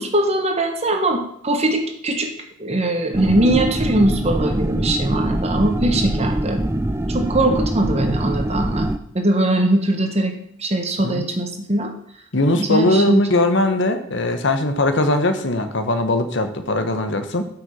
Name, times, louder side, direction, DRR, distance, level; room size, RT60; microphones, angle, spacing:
voice 1, 0.0-2.3 2.6-6.6 7.1-8.9 9.1-10.3 10.6-11.9 12.5-13.2, right 1 dB, 30° right, 4 dB, 1.3 m, -21 dB
sound 1, 3.1-9.0, right 1 dB, 10° right, 0.4 m, -23 dB
voice 2, 12.3-17.5, left 2 dB, 55° left, 8 dB, 1.2 m, -20 dB
9.5 x 6.0 x 6.8 m, 0.69 s
head